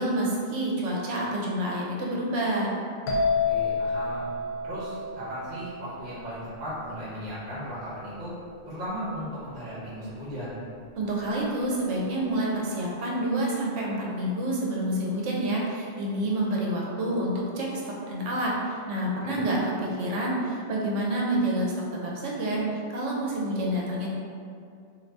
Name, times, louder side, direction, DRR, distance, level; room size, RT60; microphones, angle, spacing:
voice 1, 0.0-2.7 11.0-17.8 18.1-22.6 22.9-24.1, right 1 dB, 80° right, -3 dB, 1.0 m, -28 dB
sound 1, 3.1-6.7, left 4 dB, 85° left, 0.9 m, -29 dB
voice 2, 3.4-4.3 4.6-8.3 8.7-10.6 19.2-19.4, equal, 50° right, -10 dB, 1.0 m, -36 dB
2.6 x 2.5 x 3.3 m, 2.4 s
omnidirectional pair, 1.3 m